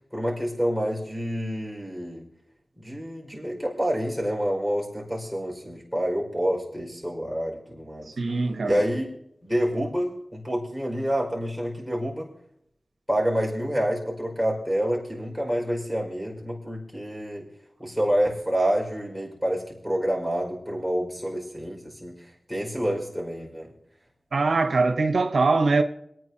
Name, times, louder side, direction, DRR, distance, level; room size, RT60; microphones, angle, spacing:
voice 1, 0.1-2.3 2.8-8.1 8.6-9.1 9.4-12.3 13.1-17.4 17.8-22.1 22.5-23.7, equal, ahead, 5.1 m, -28 dB
voice 2, 8.2-8.8 24.3-25.8, right 3 dB, 80° right, 0.9 m, -22 dB
27.5 x 9.3 x 2.8 m
cardioid pair, 50°, 0 cm